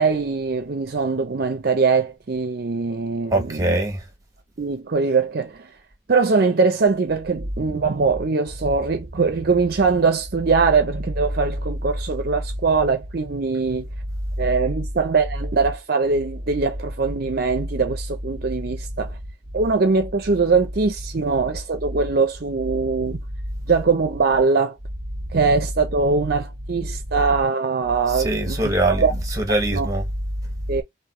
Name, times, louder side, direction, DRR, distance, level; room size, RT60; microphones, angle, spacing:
voice 1, 0.0-3.7 4.6-5.7 6.1-13.9 14.4-19.1 19.5-23.2 23.7-24.8 25.3-29.1 29.7-29.9 30.7-30.8, right 4 dB, 50° right, 0.5 m, -22 dB
voice 2, 3.3-4.0 19.0-19.1 19.6-19.7 21.1-21.2 23.5-23.7 25.1-25.4 26.6-26.7 26.9-27.1 28.1-30.1 30.4-30.8, right 1 dB, 15° right, 1.0 m, -24 dB
3.4 x 2.7 x 4.2 m
head